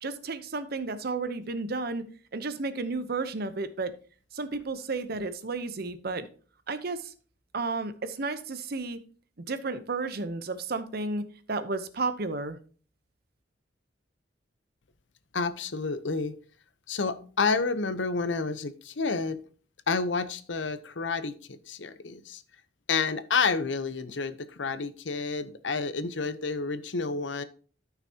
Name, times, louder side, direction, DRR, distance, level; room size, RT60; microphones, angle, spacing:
voice 1, 0.0-3.9 4.3-6.3 6.7-7.1 7.5-9.0 9.4-12.6, right 3 dB, 55° right, 0.9 m, -32 dB
voice 2, 15.3-16.4 16.9-19.4 19.9-22.4 22.9-27.4, left 4 dB, 75° left, 0.8 m, -29 dB
13.5 x 5.8 x 2.9 m
head